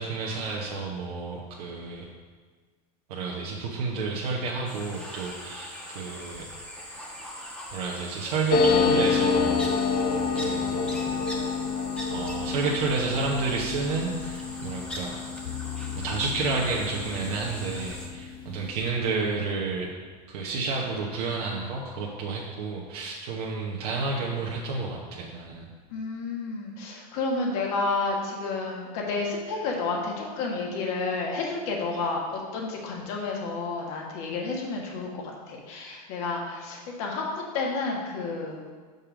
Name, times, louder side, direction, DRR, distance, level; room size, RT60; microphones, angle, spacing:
voice 1, 0.0-2.1 3.1-6.5 7.7-9.9 10.4-11.2 12.1-15.2 15.9-19.9 20.3-25.6, right 4 dB, 75° right, -3 dB, 1.1 m, -30 dB
sound 1, 4.6-18.1, left 1 dB, 5° left, 1.3 m, -41 dB
sound 2, 8.5-17.6 17.9-18.0 18.2-18.8, left 4 dB, 45° left, 0.8 m, -27 dB
sound 3, 15.5-20.6, left 10 dB, 90° left, 0.4 m, -41 dB
voice 2, 25.9-37.2 37.5-38.6, left 3 dB, 65° left, -1 dB, 1.8 m, -30 dB
5.6 x 5.4 x 5.0 m, 1.5 s
hypercardioid pair, 105°, 20 cm